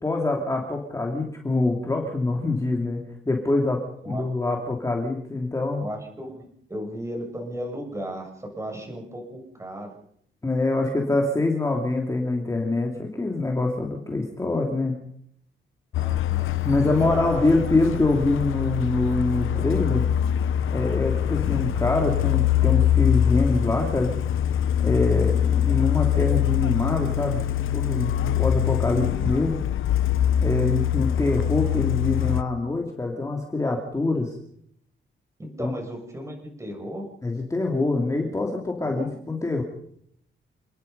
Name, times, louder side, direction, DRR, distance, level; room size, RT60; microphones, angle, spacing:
voice 1, 0.0-5.8 10.4-15.0 16.6-20.0 20.4-24.1 24.8-27.4 27.7-29.6 30.4-34.3 35.6-35.7 37.2-39.6, left 2 dB, 15° left, 1 dB, 2.9 m, -25 dB
voice 2, 5.8-10.0 15.9-16.5 16.8-17.5 35.4-37.0 38.8-39.2, right 1 dB, 15° right, 2 dB, 7.0 m, -35 dB
Truck, 15.9-32.4, left 10 dB, 80° left, 0.9 m, -24 dB
29.5 x 20.5 x 5.5 m, 0.69 s
wide cardioid pair, 165°, 21 cm